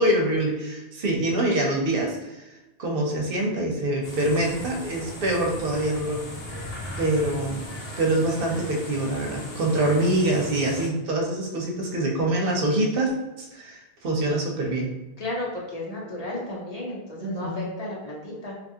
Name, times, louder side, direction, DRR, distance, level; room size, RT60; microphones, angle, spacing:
voice 1, 0.0-2.4 2.8-6.2 7.0-7.7 8.0-13.1 13.4-14.9 17.2-17.6, right 1 dB, 60° right, 0 dB, 0.8 m, -25 dB
sound 1, 4.0-10.9, left 1 dB, 65° left, 0.9 m, -37 dB
voice 2, 15.2-18.5, left 1 dB, 40° left, -5 dB, 0.7 m, -33 dB
2.8 x 2.5 x 2.7 m, 1.0 s
omnidirectional pair, 1.1 m